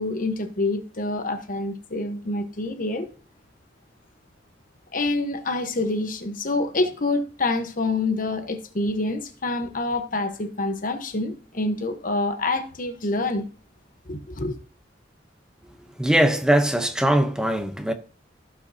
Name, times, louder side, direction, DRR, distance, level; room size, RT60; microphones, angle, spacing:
voice 1, 0.0-3.1 4.9-13.4 14.1-14.6, left 2 dB, 50° left, 1.1 m, -27 dB
voice 2, 16.0-17.9, right 1 dB, 5° right, 0.8 m, -21 dB
16.0 x 5.5 x 2.8 m
head